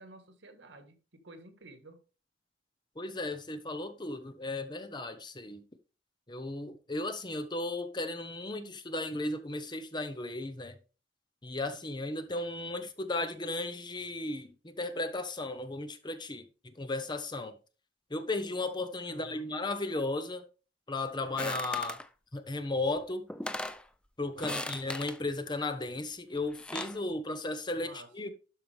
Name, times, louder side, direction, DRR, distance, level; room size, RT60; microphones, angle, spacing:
voice 1, 0.0-2.0 19.1-19.5 24.3-24.8 27.7-28.1, right 2 dB, 90° right, 1.6 m, -52 dB
voice 2, 3.0-5.6 6.3-10.8 11.4-17.6 18.1-20.4 20.9-22.0 22.3-23.3 24.2-28.3, left 2 dB, 25° left, 1.0 m, -35 dB
sound 1, 21.4-22.1 23.0-23.1 23.3-23.8 24.4-25.2 26.4-27.0, left 1 dB, 5° left, 0.4 m, -38 dB
12.0 x 4.8 x 3.4 m
head